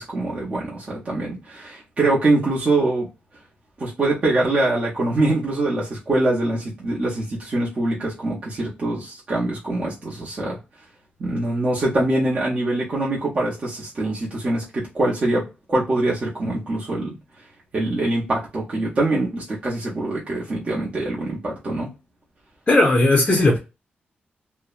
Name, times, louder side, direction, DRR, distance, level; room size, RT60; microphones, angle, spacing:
voice 1, 0.0-3.1 3.8-10.6 11.2-17.2 17.7-21.9, right 2 dB, 35° right, 0.7 m, -24 dB
voice 2, 22.7-23.6, left 2 dB, 25° left, 0.5 m, -16 dB
2.6 x 2.0 x 2.3 m
wide cardioid pair, 170°, 4 cm